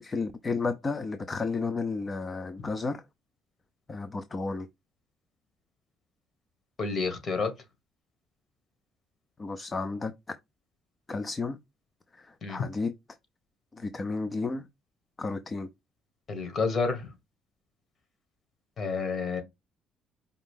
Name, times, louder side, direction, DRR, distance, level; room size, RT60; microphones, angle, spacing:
voice 1, 0.0-3.0 3.9-4.7 9.4-10.1 11.1-11.6 12.1-12.9 13.7-14.6 15.2-15.7, left 4 dB, 25° left, 0.4 m, -32 dB
voice 2, 6.8-7.5 12.4-12.6 16.3-17.1 18.8-19.4, left 4 dB, 45° left, 1.7 m, -29 dB
5.0 x 2.6 x 3.6 m
cardioid pair, 110°, 0 cm